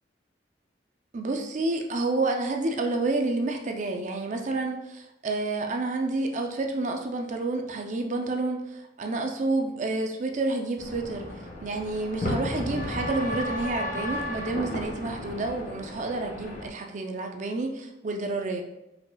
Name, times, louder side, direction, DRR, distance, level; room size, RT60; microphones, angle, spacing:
voice 1, 1.1-11.3 11.6-18.6, right 2 dB, 45° right, 3 dB, 0.5 m, -29 dB
sound 1, 10.8-16.7, left 1 dB, 45° left, 1.1 m, -34 dB
4.9 x 4.7 x 2.3 m, 0.90 s
head